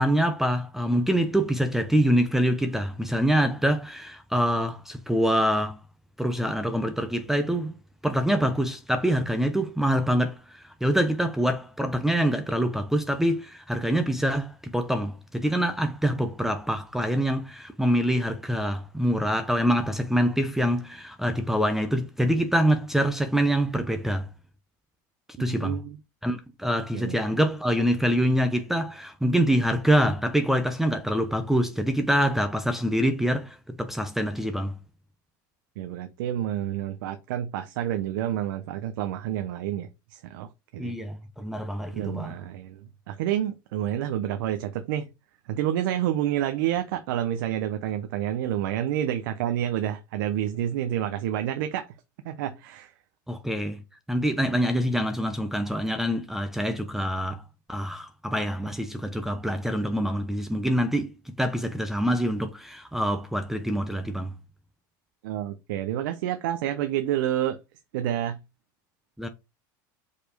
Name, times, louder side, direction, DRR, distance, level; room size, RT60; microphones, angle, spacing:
voice 1, 0.0-5.8 6.2-7.7 8.0-24.3 25.4-25.8 26.2-34.8 40.8-42.3 53.3-53.8 54.1-57.4 57.7-64.3 69.2-69.3, equal, 5° right, 0.8 m, -25 dB
voice 2, 25.4-26.0 26.9-27.2 35.8-40.9 41.9-42.8 43.1-45.1 45.5-51.9 52.2-52.9 65.2-67.6 67.9-68.4, right 11 dB, 75° right, 0.8 m, -29 dB
5.2 x 4.3 x 5.1 m
supercardioid pair, 100°, 11 cm